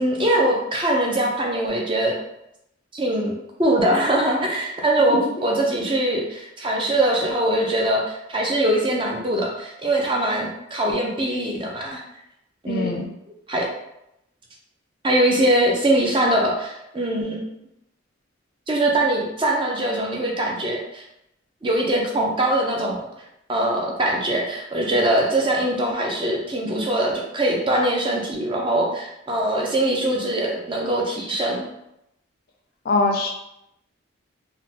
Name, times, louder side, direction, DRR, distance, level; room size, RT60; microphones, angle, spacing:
voice 1, 0.0-2.2 2.9-12.0 12.6-13.0 13.5-13.7 15.0-17.4 18.7-21.0 21.6-23.0 23.5-31.6, right 1 dB, 25° right, -1 dB, 0.5 m, -22 dB
voice 2, 12.7-13.1 32.9-33.3, left 2 dB, 50° left, 3 dB, 0.4 m, -22 dB
3.6 x 2.2 x 2.8 m, 0.83 s
head